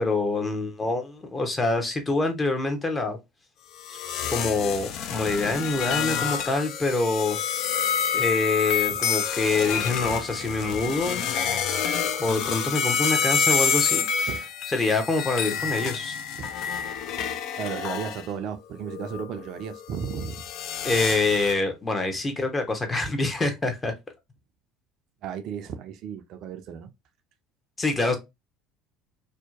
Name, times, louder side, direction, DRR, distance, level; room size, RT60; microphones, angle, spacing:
voice 1, 0.0-3.2 3.9-4.0 4.3-7.4 8.1-11.2 12.2-14.3 14.7-16.2 20.8-23.9 27.8-28.2, left 3 dB, 20° left, 0.8 m, -26 dB
sound 1, 3.8-18.3 18.8-21.5, left 7 dB, 55° left, 0.3 m, -28 dB
voice 2, 17.6-20.4 25.2-26.9, right 7 dB, 55° right, 0.4 m, -34 dB
2.7 x 2.1 x 2.4 m
hypercardioid pair, 70°, 0 cm